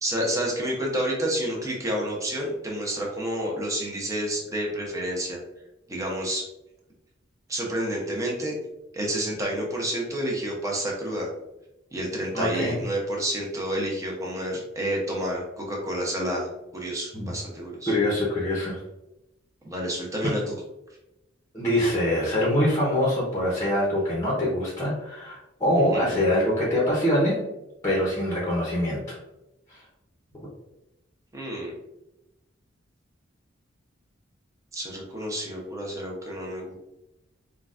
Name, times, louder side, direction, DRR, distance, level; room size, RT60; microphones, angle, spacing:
voice 1, 0.0-5.4 5.9-6.4 7.5-8.5 8.9-11.3 11.9-16.5 16.7-17.9 19.6-20.6 25.8-26.2 31.3-31.7 34.7-36.8, right 1 dB, 15° right, -2 dB, 0.7 m, -29 dB
voice 2, 12.3-12.8 17.1-17.3 17.9-18.8 21.5-27.4 27.8-29.2 29.7-29.8, left 1 dB, 15° left, -5 dB, 0.8 m, -24 dB
3.8 x 2.3 x 2.4 m, 0.92 s
head